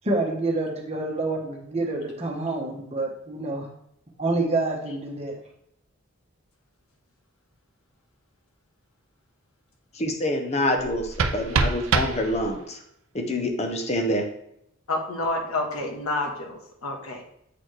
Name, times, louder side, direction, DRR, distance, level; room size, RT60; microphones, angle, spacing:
voice 1, 0.0-3.7 4.2-5.4, right 2 dB, 30° right, 0 dB, 1.1 m, -27 dB
voice 2, 9.9-12.8 13.1-14.3, left 1 dB, 30° left, 4 dB, 0.8 m, -26 dB
sound 1, 10.8-12.8, right 4 dB, 70° right, 0.5 m, -26 dB
voice 3, 14.9-17.2, left 2 dB, 90° left, 1 dB, 1.3 m, -29 dB
7.6 x 4.1 x 3.2 m, 0.73 s
head